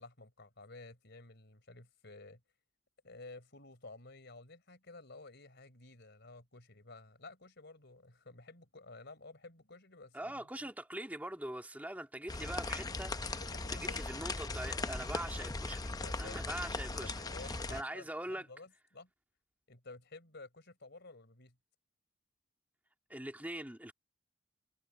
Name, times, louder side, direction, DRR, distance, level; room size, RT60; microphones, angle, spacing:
voice 1, 0.0-2.4 3.0-10.7 13.4-14.1 15.9-16.4 16.9-19.1 19.7-21.6, left 3 dB, 55° left, 4.2 m, -53 dB
voice 2, 10.1-18.5 23.1-23.9, right 1 dB, 10° right, 1.9 m, -43 dB
sound 1, 12.3-17.8, left 3 dB, 20° left, 0.6 m, -39 dB
head